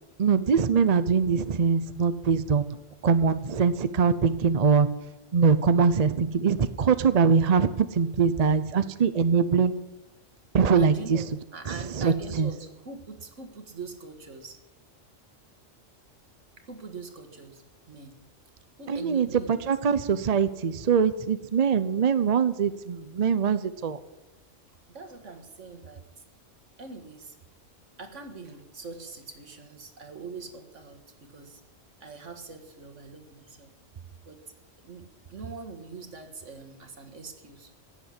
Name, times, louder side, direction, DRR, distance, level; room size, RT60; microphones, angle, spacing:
voice 1, 0.2-2.8 3.0-4.9 5.3-9.8 10.5-11.2 11.7-12.5 18.9-24.0, right 6 dB, 40° right, 12 dB, 0.6 m, -23 dB
voice 2, 10.8-11.3 11.5-14.6 16.6-18.2 18.8-19.6 24.9-26.0 26.8-27.4 28.0-31.6 32.0-33.7 34.3-34.5 34.8-37.7, right 4 dB, 70° right, 5 dB, 2.0 m, -42 dB
16.5 x 7.3 x 9.9 m, 1.0 s
omnidirectional pair, 1.3 m